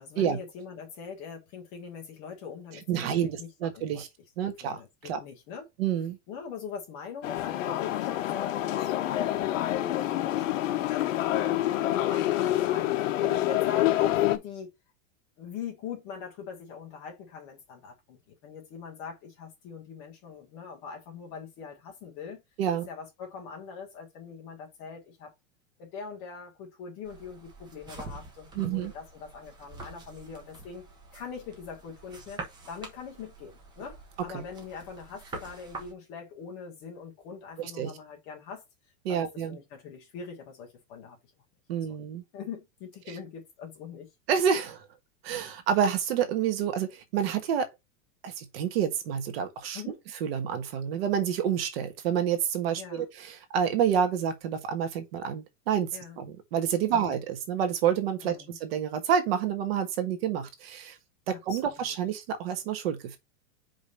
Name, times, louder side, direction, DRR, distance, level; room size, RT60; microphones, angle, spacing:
voice 1, 0.0-4.0 4.4-5.7 6.3-11.6 12.0-14.7 15.4-22.4 22.9-25.3 25.8-30.9 31.1-32.4 32.7-38.6 39.1-41.2 41.9-42.0 42.3-44.1 49.7-50.0 52.7-53.1 55.9-56.2 56.9-57.2 58.2-58.6 61.3-62.0, left 6 dB, 10° left, 0.3 m, -42 dB
voice 2, 2.9-4.1 4.4-5.2 5.8-6.2 22.6-22.9 28.5-28.9 34.3-34.4 37.6-37.9 39.0-39.6 41.7-42.2 43.1-43.2 44.3-44.9 45.2-47.7 48.2-49.8 50.2-55.9 56.2-61.0 61.3-63.2, right 8 dB, 50° right, 1.4 m, -28 dB
sound 1, 7.2-14.4, left 14 dB, 75° left, 1.0 m, -27 dB
sound 2, 27.0-35.9, right 3 dB, 10° right, 0.8 m, -46 dB
5.2 x 3.9 x 5.1 m
supercardioid pair, 175°, 39 cm